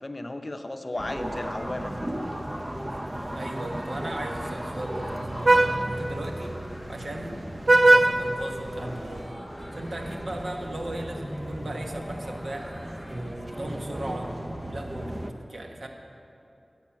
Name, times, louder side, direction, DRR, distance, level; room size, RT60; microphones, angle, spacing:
voice 1, 0.0-2.3, left 2 dB, 45° left, 7 dB, 0.7 m, -35 dB
sound 1, 0.9-14.1, left 1 dB, 15° left, 2.6 m, -48 dB
sound 2, 1.0-15.3, right 1 dB, 25° right, 0.8 m, -36 dB
Vehicle horn car horn honking, 1.1-9.3, right 2 dB, 60° right, 0.4 m, -26 dB
voice 2, 3.3-6.6 6.9-7.4 7.8-9.3 9.7-12.7 13.1-14.3 14.7-15.9, right 1 dB, 75° right, 2 dB, 1.2 m, -37 dB
14.5 x 7.8 x 5.9 m, 2.8 s
wide cardioid pair, 55°, 0 cm